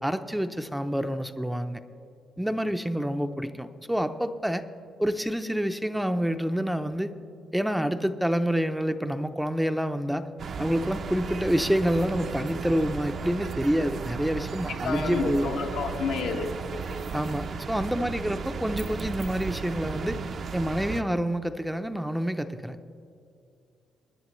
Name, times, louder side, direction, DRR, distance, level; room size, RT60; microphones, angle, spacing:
voice 1, 0.0-1.8 2.4-4.6 5.0-7.1 7.5-10.3 10.6-15.5 17.1-20.2 20.5-22.8, equal, 5° right, 9 dB, 0.5 m, -27 dB
sound 1, 10.4-21.0, right 5 dB, 55° right, 0.6 m, -35 dB
voice 2, 14.8-16.5, left 5 dB, 90° left, 1 dB, 1.3 m, -29 dB
23.0 x 10.0 x 3.1 m, 2.5 s
cardioid pair, 90°, 0 cm